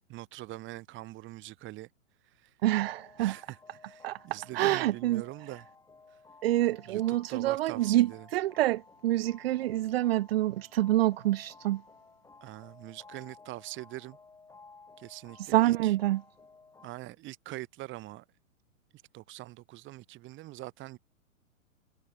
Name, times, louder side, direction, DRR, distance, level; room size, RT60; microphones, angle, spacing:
voice 1, 0.1-1.9 2.3-2.5 3.2-5.7 6.1-6.2 6.9-8.3 12.4-14.2 15.0-15.9 16.8-18.2 19.1-21.0, right 17 dB, 30° right, 4.5 m, -43 dB
voice 2, 2.6-3.4 4.0-4.2 4.5-5.2 6.4-11.8 15.4-16.2, right 15 dB, 45° right, 1.2 m, -27 dB
sound 1, 2.8-16.9, left 4 dB, 10° left, 5.6 m, -56 dB
figure-of-eight pair, 115°, 41 cm